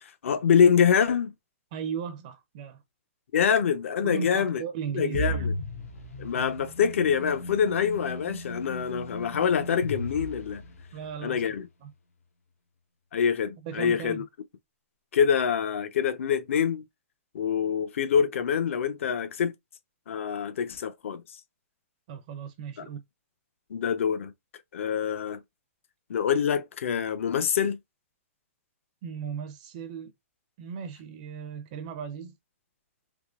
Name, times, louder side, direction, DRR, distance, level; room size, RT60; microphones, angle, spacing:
voice 1, 0.0-1.3 3.3-4.6 4.9-5.5 6.2-10.6 11.2-11.7 13.1-14.2 15.1-16.8 17.3-19.5 20.1-21.4 22.8-22.9 23.7-24.3 24.7-25.4 26.1-27.8, left 7 dB, 65° left, 0.7 m, -25 dB
voice 2, 1.7-2.8 4.0-5.5 10.9-11.5 11.8-11.9 13.6-14.2 22.1-23.0 29.0-30.1 30.6-32.4, right 7 dB, 35° right, 0.4 m, -36 dB
sound 1, 5.1-11.1, equal, 90° left, 1.1 m, -36 dB
3.6 x 2.9 x 2.3 m
hypercardioid pair, 165°, 7 cm